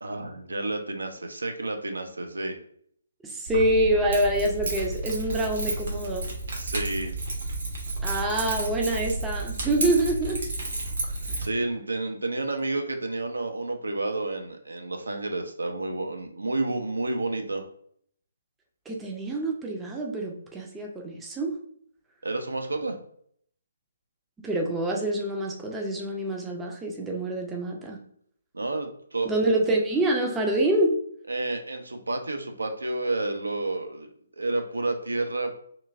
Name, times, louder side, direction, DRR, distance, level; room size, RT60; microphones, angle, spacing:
voice 1, 0.0-2.6 6.6-7.1 11.0-17.7 22.2-23.0 28.5-29.4 31.3-35.6, right 2 dB, 75° right, 5 dB, 0.4 m, -30 dB
voice 2, 3.2-6.3 8.0-10.4 11.3-11.4 18.9-21.6 24.4-28.0 29.2-30.9, right 1 dB, 10° right, 0 dB, 0.4 m, -26 dB
Keys jangling, 3.5-11.5, right 2 dB, 55° right, 0.8 m, -31 dB
3.0 x 2.5 x 2.3 m, 0.65 s
figure-of-eight pair, 135°, 0 cm